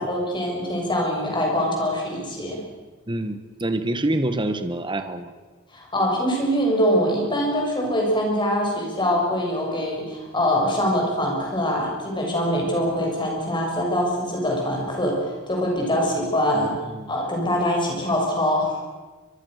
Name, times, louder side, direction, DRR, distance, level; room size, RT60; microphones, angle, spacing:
voice 1, 0.0-2.6 5.7-16.7 17.1-18.8, equal, 20° left, -1 dB, 7.0 m, -23 dB
voice 2, 3.1-5.3 16.5-17.1, right 1 dB, 20° right, 9 dB, 1.3 m, -26 dB
24.5 x 22.5 x 6.6 m, 1.3 s
head